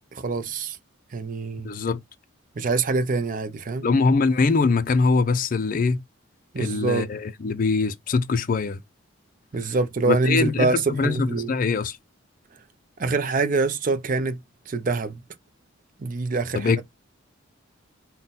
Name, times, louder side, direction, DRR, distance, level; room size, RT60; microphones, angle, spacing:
voice 1, 0.1-0.8 1.1-1.7 2.6-3.9 6.5-7.1 9.5-11.5 13.0-14.4 14.7-15.2 16.0-16.7, right 3 dB, 40° right, 0.5 m, -25 dB
voice 2, 1.6-2.0 3.8-6.0 6.6-8.8 10.1-12.0 16.5-16.8, left 4 dB, 40° left, 0.4 m, -23 dB
3.8 x 2.2 x 4.0 m
head